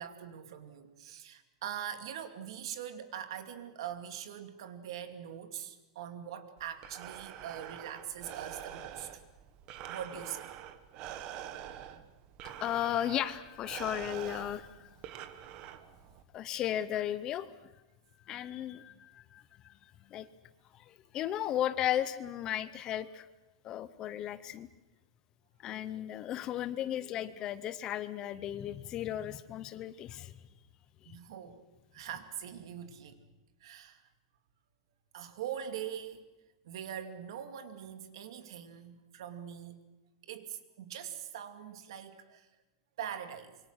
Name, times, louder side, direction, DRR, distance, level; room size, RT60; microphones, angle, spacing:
voice 1, 0.0-9.2 9.9-10.5 31.0-31.6 31.9-33.2 33.6-34.0 35.1-36.3 36.6-39.8 40.2-42.5 43.0-43.6, right 9 dB, 65° right, 8 dB, 2.5 m, -42 dB
Breathing, 6.6-16.2, right 11 dB, 30° right, 1.3 m, -46 dB
voice 2, 12.4-15.0 16.3-17.5 18.3-19.7 20.1-20.3 20.8-23.3 23.6-24.7 25.6-30.3 31.0-31.1, left 11 dB, 25° left, 15 dB, 0.7 m, -35 dB
26.0 x 24.0 x 6.4 m, 1.0 s
supercardioid pair, 175°, 3 cm